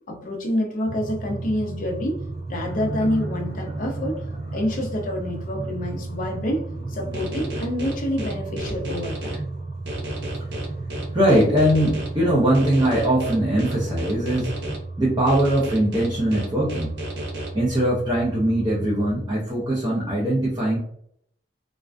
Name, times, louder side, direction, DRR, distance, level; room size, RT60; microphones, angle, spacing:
voice 1, 0.1-2.2 2.5-4.2 4.5-9.4, left 1 dB, 45° left, 3 dB, 0.5 m, -27 dB
sound 1, 0.9-19.1, right 2 dB, 15° left, 1.0 m, -34 dB
sound 2, 2.6-7.6, right 1 dB, 85° left, 0.7 m, -37 dB
sound 3, 7.1-9.4 9.9-12.1 12.5-14.8 15.3-17.5, right 1 dB, 85° right, 0.9 m, -33 dB
voice 2, 11.1-14.5 15.0-17.0 17.5-20.8, right 1 dB, 20° right, -6 dB, 0.5 m, -21 dB
2.4 x 2.1 x 2.4 m, 0.68 s
head